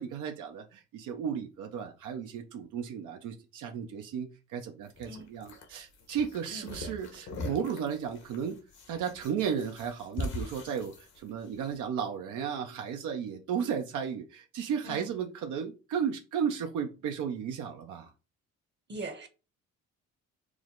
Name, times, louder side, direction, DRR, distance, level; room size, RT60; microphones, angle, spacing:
voice 1, 0.0-8.6 8.9-18.1, right 7 dB, 85° right, 0.6 m, -34 dB
sound 1, 4.9-11.7, left 2 dB, 70° left, 1.1 m, -42 dB
voice 2, 18.9-19.3, right 2 dB, 35° right, 0.8 m, -40 dB
4.7 x 2.1 x 3.7 m
cardioid pair, 90°, 30 cm